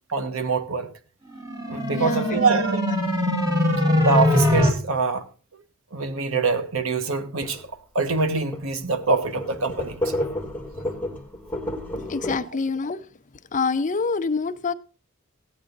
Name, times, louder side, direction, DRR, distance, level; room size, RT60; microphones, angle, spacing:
voice 1, 0.1-0.9 1.7-2.8 3.8-5.2 5.9-7.6 7.9-10.1, right 4 dB, 75° right, 1.1 m, -24 dB
sound 1, 1.4-4.7, left 1 dB, 15° right, 2.0 m, -22 dB
voice 2, 1.9-2.4 11.9-13.0 13.5-14.7, left 4 dB, 35° left, 0.6 m, -26 dB
sound 2, 7.4-7.7 8.2-8.3 8.5-8.7 9.0-12.4, left 1 dB, 10° left, 1.5 m, -31 dB
16.0 x 8.5 x 3.9 m
head